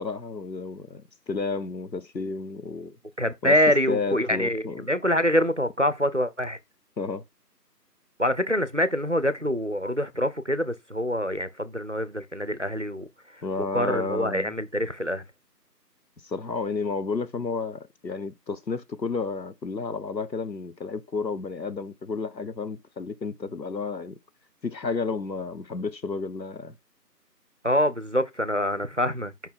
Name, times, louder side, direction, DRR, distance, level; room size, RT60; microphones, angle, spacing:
voice 1, 0.0-3.0 3.4-3.5 3.9-4.9 7.0-7.2 13.4-14.5 16.2-24.2 24.6-26.7, left 4 dB, 85° left, 1.1 m, -31 dB
voice 2, 3.2-6.6 8.2-13.1 13.7-15.2 27.6-29.3, equal, 45° right, 0.6 m, -25 dB
5.5 x 4.7 x 3.7 m
figure-of-eight pair, 175°, 50 cm